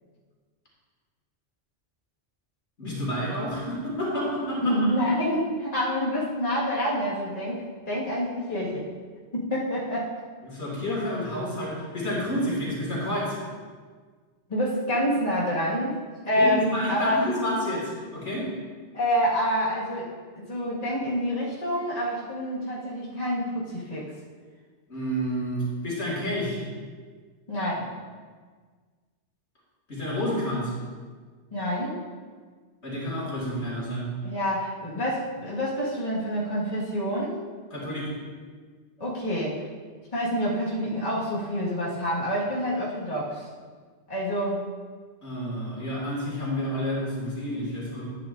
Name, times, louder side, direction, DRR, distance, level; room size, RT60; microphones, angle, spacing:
voice 1, 2.8-4.8 10.4-13.4 16.4-18.5 24.9-26.6 29.9-30.7 32.8-34.1 37.7-38.1 45.2-48.0, equal, 70° left, -5 dB, 2.6 m, -29 dB
voice 2, 4.6-8.9 9.3-10.1 14.5-17.2 18.9-24.1 27.5-27.9 31.5-32.0 34.2-37.4 39.0-39.6 40.1-43.5 44.1-44.6, equal, 35° left, -7 dB, 1.8 m, -27 dB
11.5 x 8.9 x 2.6 m, 1.5 s
omnidirectional pair, 1.2 m